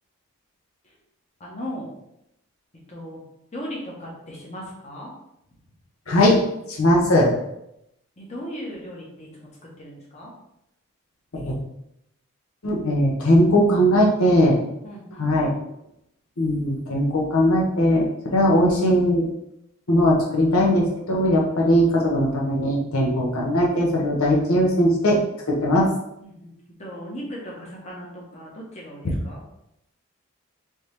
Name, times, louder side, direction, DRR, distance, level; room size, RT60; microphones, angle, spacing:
voice 1, 1.4-1.9 2.9-3.2 3.5-5.1 8.2-9.5 9.8-10.3 14.8-15.3 26.2-26.5 26.8-29.4, equal, 30° left, -3 dB, 0.9 m, -37 dB
voice 2, 6.1-6.4 6.7-7.3 11.3-11.5 12.6-14.6 15.2-15.5 16.4-19.3 19.9-25.2 25.5-25.9 29.0-29.2, equal, 90° left, -2 dB, 0.8 m, -19 dB
3.6 x 2.8 x 3.2 m, 0.81 s
head